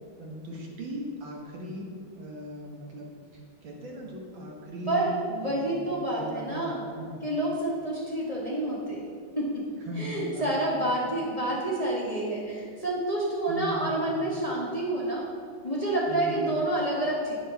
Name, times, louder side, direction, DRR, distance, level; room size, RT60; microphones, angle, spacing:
voice 1, 0.2-1.9 2.1-5.1 5.5-6.7 7.0-7.2 9.8-10.5 10.9-11.2 13.5-14.4 16.1-16.5, equal, 80° right, -2 dB, 2.3 m, -39 dB
voice 2, 4.9-6.8 7.2-9.0 9.3-9.6 10.0-15.3 15.6-17.4, right 1 dB, 20° left, -6 dB, 1.4 m, -28 dB
10.5 x 9.9 x 3.0 m, 2.1 s
omnidirectional pair, 2.1 m